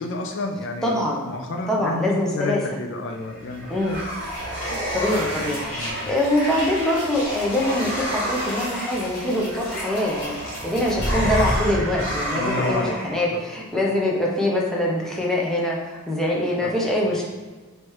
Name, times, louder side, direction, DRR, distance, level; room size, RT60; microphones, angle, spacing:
voice 1, 0.0-0.9 1.2-3.8 5.7-6.1 12.3-13.0 13.3-13.4 13.7-13.8 16.6-16.7, left 2 dB, 60° left, 3 dB, 0.4 m, -29 dB
voice 2, 0.8-1.3 1.7-2.6 3.7-4.0 4.9-17.3, left 1 dB, ahead, -4 dB, 0.7 m, -24 dB
sound 1, 3.2-13.2, equal, 80° left, 1.4 m, -28 dB
3.2 x 3.1 x 4.7 m, 1.3 s
head